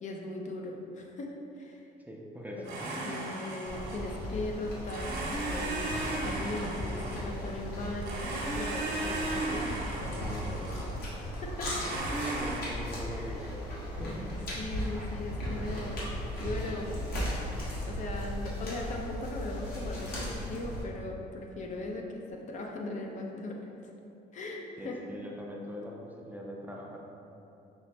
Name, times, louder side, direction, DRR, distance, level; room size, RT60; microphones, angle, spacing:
voice 1, 0.0-1.9 2.6-2.7 3.0-11.0 11.4-11.8 13.1-13.4 14.0-17.1 17.8-23.9 24.3-25.0, left 2 dB, 45° left, 1 dB, 0.6 m, -39 dB
voice 2, 2.1-3.0 12.2-13.7 14.0-14.3 24.8-27.0, equal, 10° right, -2 dB, 0.4 m, -42 dB
Domestic sounds home sounds, 2.6-4.3 4.8-7.6 8.0-11.0 11.7-12.6, right 2 dB, 60° right, 0.9 m, -36 dB
sound 1, 3.6-20.8, equal, 65° left, 1.3 m, -37 dB
5.6 x 2.1 x 4.2 m, 2.9 s
cardioid pair, 110°, 17 cm